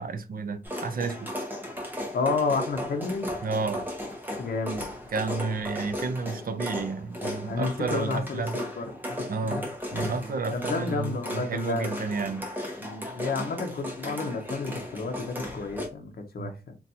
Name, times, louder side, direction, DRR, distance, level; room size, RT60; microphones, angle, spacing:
voice 1, 0.0-1.3 3.4-3.8 5.1-8.6 9.3-9.6 9.9-12.4 16.4-16.5, right 4 dB, 55° right, 0.4 m, -31 dB
sound 1, 0.6-15.9, left 1 dB, 10° right, 0.7 m, -36 dB
voice 2, 2.1-3.3 4.4-4.8 7.5-9.6 9.9-10.2 10.5-12.1 12.8-16.7, left 4 dB, 55° left, 0.6 m, -31 dB
4.0 x 2.3 x 2.7 m
wide cardioid pair, 170°, 18 cm